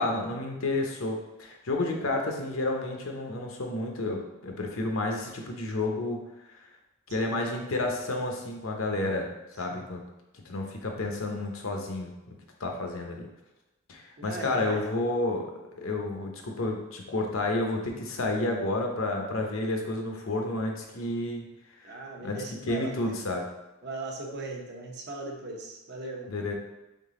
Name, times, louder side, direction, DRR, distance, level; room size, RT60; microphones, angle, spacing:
voice 1, 0.0-6.3 7.1-9.3 9.6-10.0 10.3-13.3 13.9-21.5 21.9-22.0 22.2-23.5 26.3-26.5, left 2 dB, 80° left, 2 dB, 0.8 m, -31 dB
voice 2, 1.9-2.3 7.3-7.7 9.7-9.9 14.2-14.9 21.8-23.2 23.8-26.3, right 2 dB, 50° right, 0 dB, 0.8 m, -39 dB
3.8 x 3.7 x 3.7 m, 1.0 s
head